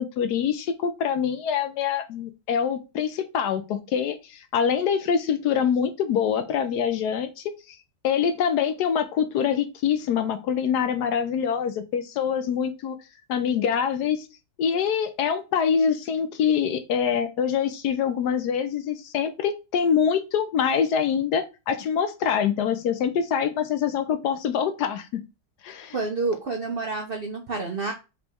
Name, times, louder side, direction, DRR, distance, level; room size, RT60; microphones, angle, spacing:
voice 1, 0.0-7.8 8.0-13.0 13.3-14.3 14.6-25.1 25.6-26.0, left 7 dB, 70° left, 9 dB, 1.1 m, -25 dB
voice 2, 25.9-27.9, right 3 dB, 60° right, 2 dB, 0.5 m, -28 dB
5.1 x 3.0 x 3.4 m, 0.28 s
omnidirectional pair, 1.9 m